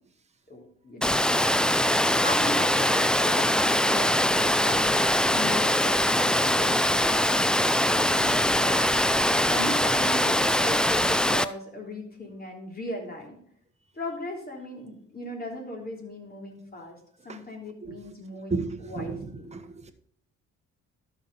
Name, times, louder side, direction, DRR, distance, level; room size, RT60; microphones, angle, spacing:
voice 1, 0.5-1.5 2.1-7.5 7.9-8.9 9.5-13.4 13.9-17.0 17.2-19.5, left 1 dB, 30° left, 0 dB, 3.4 m, -38 dB
Water, 1.0-11.4, left 1 dB, 5° left, 0.4 m, -22 dB
voice 2, 18.5-19.9, right 4 dB, 20° right, 5 dB, 1.2 m, -33 dB
12.5 x 6.0 x 4.1 m, 0.64 s
cardioid pair, 90°, 30 cm